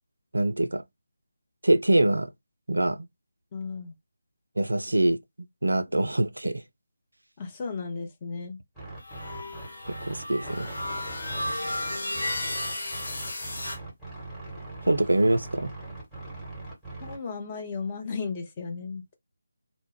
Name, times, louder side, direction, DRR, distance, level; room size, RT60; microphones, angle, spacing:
voice 1, 0.3-0.8 1.6-2.3 2.7-3.1 4.6-5.2 5.6-6.6 10.1-10.7 14.8-15.7, right 1 dB, 70° right, 0.3 m, -24 dB
voice 2, 3.5-3.9 7.4-8.6 17.0-19.0, left 4 dB, 20° left, 0.6 m, -34 dB
sound 1, 8.7-17.2, right 2 dB, 5° left, 1.0 m, -41 dB
sound 2, 9.0-13.8, left 1 dB, 55° left, 1.2 m, -33 dB
2.1 x 2.0 x 3.2 m
figure-of-eight pair, 155°, 0 cm